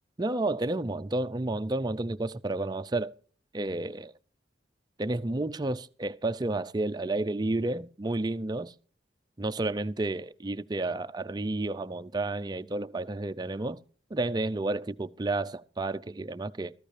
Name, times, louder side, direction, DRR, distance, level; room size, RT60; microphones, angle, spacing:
voice 1, 0.2-3.1 3.5-4.1 5.0-8.7 9.4-13.8 14.1-16.7, right 2 dB, 25° right, 0.5 m, -31 dB
14.5 x 14.0 x 3.3 m
head